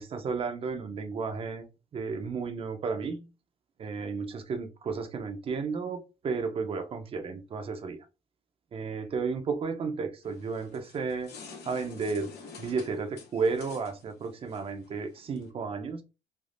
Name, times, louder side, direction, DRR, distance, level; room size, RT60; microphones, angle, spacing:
voice 1, 0.0-3.3 3.8-8.1 8.7-11.3 11.6-12.3 12.6-16.0, right 4 dB, 35° right, 0.6 m, -33 dB
sound 1, 10.2-15.5, left 5 dB, 80° left, 1.0 m, -49 dB
3.4 x 2.3 x 2.4 m
cardioid pair, 135°, 17 cm